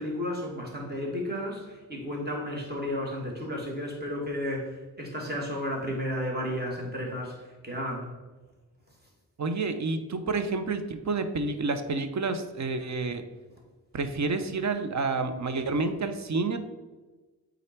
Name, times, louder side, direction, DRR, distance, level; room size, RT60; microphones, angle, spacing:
voice 1, 0.0-8.1, equal, 25° right, -1 dB, 2.2 m, -33 dB
voice 2, 9.4-13.2 13.9-16.6, right 3 dB, 50° right, 9 dB, 0.8 m, -29 dB
8.6 x 3.9 x 4.5 m, 1.2 s
wide cardioid pair, 95°, 37 cm